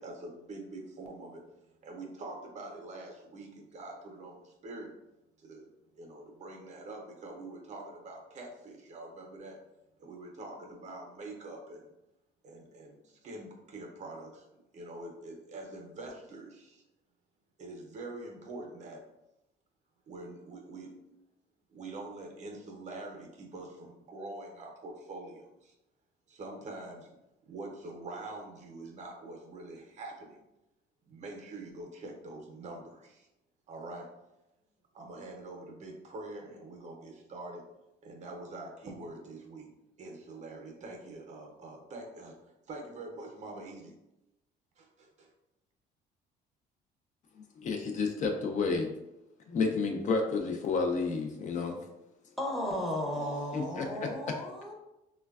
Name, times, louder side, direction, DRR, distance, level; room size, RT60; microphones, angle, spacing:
voice 1, 0.0-1.4 1.8-4.9 5.4-5.7 5.9-9.6 10.0-11.8 12.4-14.5 14.7-16.8 17.6-19.0 20.1-21.1 21.7-25.7 26.3-27.1 27.5-30.4 31.1-33.3 33.7-34.1 34.9-37.6 38.0-39.7 40.0-42.4 42.7-43.9 44.8-45.3 53.1-53.4, right 2 dB, 45° right, 1 dB, 0.6 m, -45 dB
voice 2, 47.6-48.9 49.5-51.8 53.5-54.1, left 4 dB, 45° left, 3 dB, 0.4 m, -30 dB
voice 3, 52.4-54.7, left 1 dB, ahead, -1 dB, 0.6 m, -35 dB
3.2 x 2.2 x 2.3 m, 0.92 s
cardioid pair, 110°, 17 cm